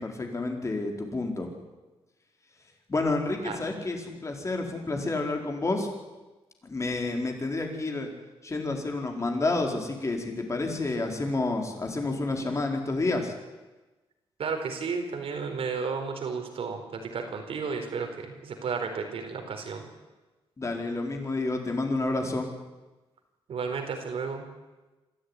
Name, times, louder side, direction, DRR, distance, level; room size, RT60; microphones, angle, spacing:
voice 1, 0.0-1.5 2.9-5.9 6.6-8.1 8.4-13.3 20.6-22.5, left 2 dB, 30° left, 2 dB, 4.5 m, -29 dB
voice 2, 14.4-19.9 23.5-24.5, right 5 dB, 65° right, 4 dB, 4.6 m, -33 dB
27.0 x 13.5 x 9.9 m, 1.2 s
cardioid pair, 100°, 10 cm